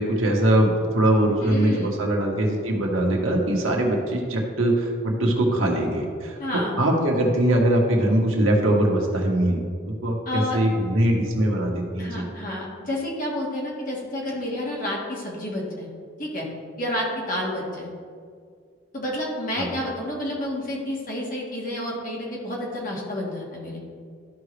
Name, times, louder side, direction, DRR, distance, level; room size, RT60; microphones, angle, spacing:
voice 1, 0.0-9.6 10.0-12.2 19.6-19.7, right 1 dB, 85° right, 0 dB, 1.3 m, -22 dB
voice 2, 1.4-2.0 6.4-6.8 10.3-10.6 12.0-15.9 16.2-16.5 16.8-17.9 18.9-23.8, left 1 dB, 45° left, -4 dB, 1.8 m, -30 dB
13.0 x 4.9 x 3.3 m, 2.1 s
head